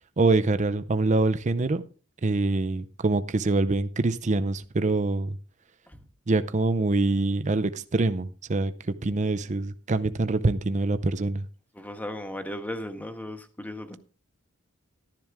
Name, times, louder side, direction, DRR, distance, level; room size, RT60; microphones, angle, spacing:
voice 1, 0.2-1.8 2.2-5.4 6.3-11.5, right 3 dB, 35° right, 11 dB, 0.6 m, -25 dB
voice 2, 11.7-14.0, left 1 dB, 10° left, 7 dB, 1.2 m, -36 dB
12.0 x 10.5 x 3.5 m, 0.39 s
head